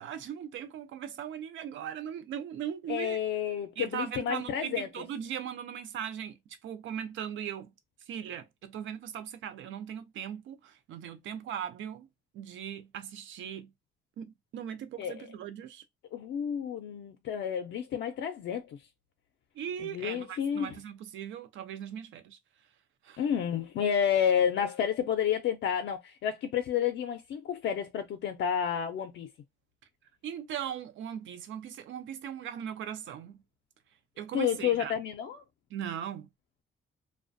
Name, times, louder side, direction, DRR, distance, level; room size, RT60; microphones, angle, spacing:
voice 1, 0.0-3.2 3.8-6.4 6.6-7.7 8.1-12.1 12.3-13.7 14.2-15.8 19.5-22.4 23.0-23.2 30.2-33.4 34.2-34.9 35.7-36.3, right 9 dB, 75° right, 0.5 m, -39 dB
voice 2, 2.9-4.9 15.0-15.3 16.1-18.8 19.9-20.8 23.2-29.3 34.3-35.4, left 8 dB, 65° left, 0.5 m, -30 dB
2.4 x 2.1 x 2.5 m
cardioid pair, 90°, 20 cm